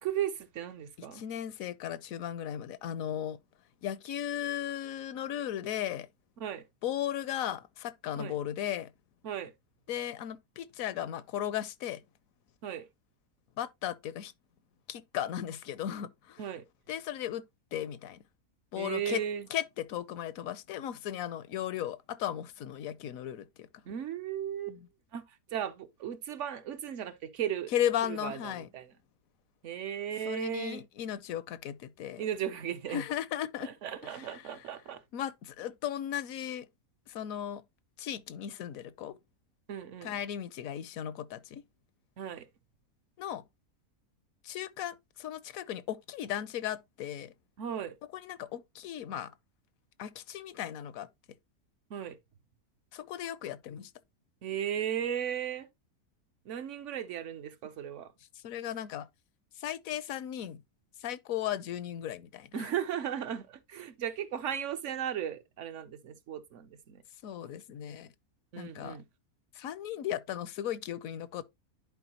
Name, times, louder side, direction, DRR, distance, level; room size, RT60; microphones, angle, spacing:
voice 1, 0.0-1.2 6.4-6.6 8.2-8.4 9.2-9.5 12.6-12.9 16.4-16.6 18.7-19.5 23.9-24.8 25.1-27.7 28.0-28.9 29.6-30.8 32.2-33.0 33.6-35.0 39.7-40.2 42.2-42.5 47.6-47.9 51.9-52.2 54.4-55.7 56.5-58.1 62.5-67.0 68.5-69.0, right 9 dB, 65° right, 0.9 m, -36 dB
voice 2, 1.1-3.4 3.8-6.1 6.8-8.9 9.9-12.0 13.6-14.3 14.9-16.4 16.9-17.4 17.7-18.2 18.7-19.2 19.5-23.7 24.7-24.8 27.7-28.7 30.3-32.2 32.9-33.7 35.1-36.7 37.1-37.6 38.0-39.2 40.0-41.6 43.2-43.4 44.4-47.3 48.1-49.3 50.0-51.1 52.9-53.9 58.4-59.1 59.6-60.6 61.0-62.7 67.2-68.1 68.6-69.0 69.6-71.4, left 11 dB, 75° left, 1.0 m, -36 dB
11.0 x 4.5 x 2.8 m
omnidirectional pair, 1.6 m